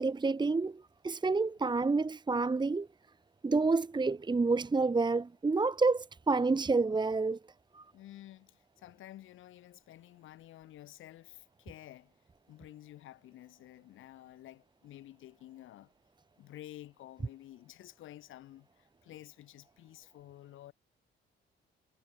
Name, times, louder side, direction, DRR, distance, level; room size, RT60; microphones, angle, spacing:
voice 1, 0.0-2.9 3.4-7.4 7.7-7.8, right 3 dB, 20° right, 1.3 m, -29 dB
voice 2, 7.9-12.1 12.5-15.9 16.4-20.7, left 14 dB, 85° left, 7.2 m, -51 dB
cardioid pair, 90°, 20 cm